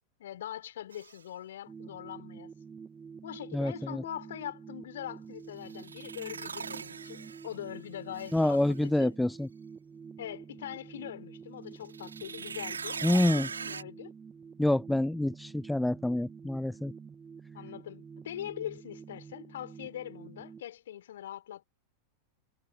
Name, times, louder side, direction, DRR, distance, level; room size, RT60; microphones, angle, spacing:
voice 1, 0.2-2.5 3.2-9.1 10.2-14.1 17.5-21.6, left 11 dB, 60° left, 5.0 m, -42 dB
sound 1, 0.9-1.2 5.6-7.7 8.1-8.8 11.8-13.8, right 6 dB, 75° right, 3.9 m, -40 dB
sound 2, 1.7-20.6, right 6 dB, 20° right, 1.6 m, -48 dB
voice 2, 3.5-4.0 8.3-9.5 13.0-13.5 14.6-16.9, left 1 dB, 5° left, 0.3 m, -27 dB
figure-of-eight pair, 90°, 0 cm